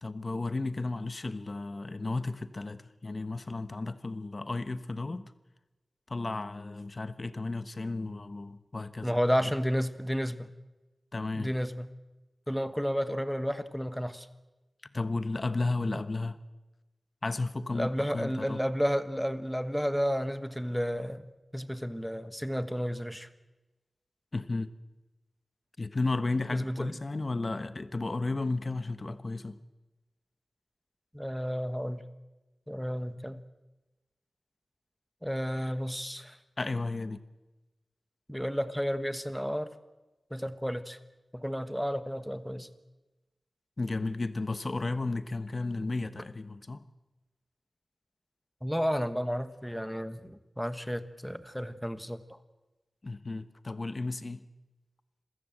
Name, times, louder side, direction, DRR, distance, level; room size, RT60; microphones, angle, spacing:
voice 1, 0.0-5.3 6.1-9.2 11.1-11.5 14.9-16.4 17.2-18.6 24.3-24.7 25.8-29.6 36.6-37.2 43.8-46.8 53.0-54.4, left 3 dB, 45° left, 13 dB, 1.2 m, -33 dB
voice 2, 9.0-10.5 11.3-11.9 12.5-14.3 17.7-21.2 21.5-23.3 26.5-27.0 31.1-32.0 32.7-33.4 35.2-36.4 38.3-39.7 40.3-41.0 41.3-42.7 48.6-52.4, equal, ahead, 12 dB, 1.3 m, -32 dB
27.0 x 16.0 x 7.9 m, 1.1 s
wide cardioid pair, 70°, 0 cm